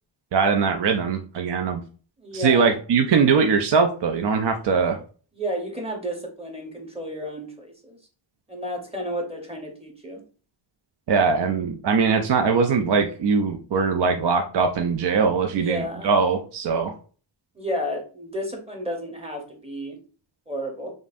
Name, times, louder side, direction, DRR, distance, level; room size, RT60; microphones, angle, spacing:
voice 1, 0.3-1.8 2.3-5.0 11.1-16.9, right 5 dB, 60° right, 5 dB, 0.5 m, -21 dB
voice 2, 2.2-2.7 5.3-8.0 8.5-10.2 15.5-16.1 17.5-20.0 20.5-20.9, equal, 15° right, 1 dB, 0.9 m, -32 dB
5.3 x 2.5 x 2.5 m, 0.39 s
wide cardioid pair, 130°, 48 cm